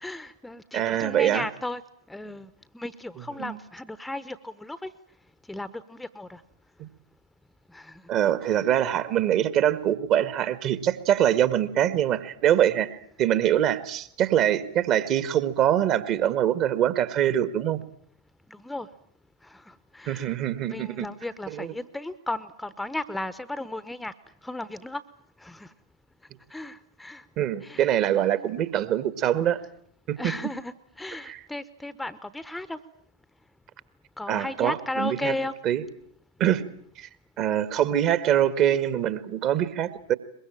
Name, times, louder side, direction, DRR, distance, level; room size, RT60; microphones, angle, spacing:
voice 1, 0.0-1.8 2.1-4.9 5.5-6.4 7.7-8.0 8.4-8.6 18.5-18.9 19.4-20.4 20.6-24.1 24.4-25.0 25.4-25.7 26.5-27.2 27.6-28.3 30.2-32.8 34.2-35.5, left 2 dB, 5° left, 15 dB, 1.1 m, -35 dB
voice 2, 0.7-1.4 3.4-3.6 6.8-6.9 8.1-17.8 20.0-21.0 21.5-21.7 27.4-29.6 30.1-30.2 31.3-31.4 34.3-35.3 35.6-35.8 36.4-36.6 37.0-37.1 37.4-40.1, right 11 dB, 35° right, 14 dB, 1.7 m, -24 dB
23.0 x 22.0 x 9.0 m, 0.65 s
figure-of-eight pair, 90°, 0 cm